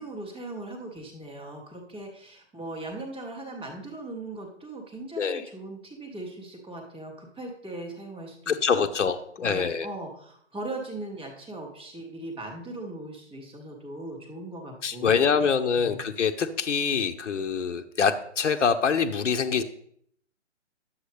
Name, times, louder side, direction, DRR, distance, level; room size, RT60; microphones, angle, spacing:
voice 1, 0.0-8.9 9.4-15.3 15.8-16.0, right 2 dB, 5° right, -11 dB, 0.5 m, -39 dB
voice 2, 8.5-9.9 14.8-19.6, left 6 dB, 80° left, 6 dB, 0.8 m, -25 dB
10.0 x 7.5 x 3.3 m, 0.67 s
hypercardioid pair, 145°, 36 cm